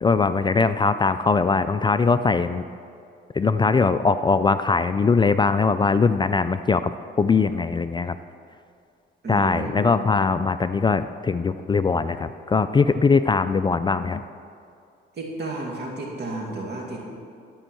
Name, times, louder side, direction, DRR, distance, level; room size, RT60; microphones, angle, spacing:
voice 1, 0.0-2.6 3.3-8.1 9.3-14.2, left 4 dB, 25° left, 12 dB, 0.3 m, -21 dB
voice 2, 9.2-9.9 15.1-17.0, right 2 dB, 55° right, -1 dB, 2.4 m, -32 dB
12.0 x 5.4 x 7.7 m, 2.4 s
cardioid pair, 90°, 20 cm